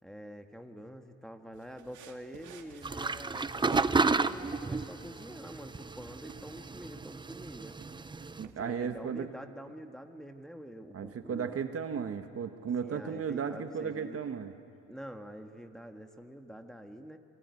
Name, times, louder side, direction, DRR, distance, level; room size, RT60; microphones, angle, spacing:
voice 1, 0.0-7.8 8.4-11.6 12.8-14.2 14.9-17.2, equal, ahead, 4 dB, 1.7 m, -46 dB
sound 1, 1.5-9.0, right 7 dB, 75° right, 2.2 m, -53 dB
sound 2, 2.8-8.4, right 3 dB, 15° right, 0.6 m, -32 dB
voice 2, 8.4-9.3 10.9-14.5, right 7 dB, 50° right, 8 dB, 1.4 m, -35 dB
26.5 x 20.0 x 9.7 m, 2.6 s
cardioid pair, 90°, 30 cm